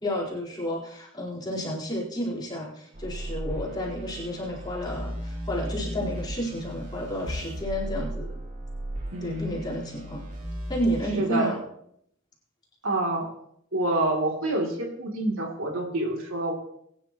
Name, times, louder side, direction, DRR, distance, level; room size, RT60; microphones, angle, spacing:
voice 1, 0.0-8.3 9.2-10.2 10.7-11.6, equal, 20° left, -5 dB, 4.3 m, -31 dB
sound 1, 2.9-11.0, right 1 dB, 40° right, 2.9 m, -36 dB
voice 2, 9.1-9.5 11.2-11.5 12.8-13.3 13.7-16.5, right 1 dB, 75° right, 0 dB, 3.1 m, -27 dB
22.0 x 10.5 x 3.1 m, 0.70 s
head